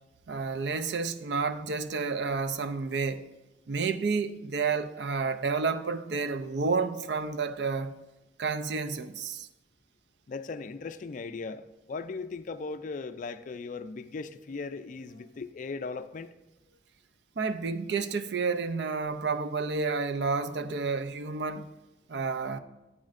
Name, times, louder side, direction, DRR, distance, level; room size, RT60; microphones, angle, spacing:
voice 1, 0.3-3.2 3.7-7.9 8.4-9.5 17.4-21.7 22.1-22.6, right 4 dB, 70° right, 0.5 m, -30 dB
voice 2, 10.3-16.3, left 4 dB, 45° left, 0.4 m, -38 dB
10.5 x 8.5 x 2.5 m
head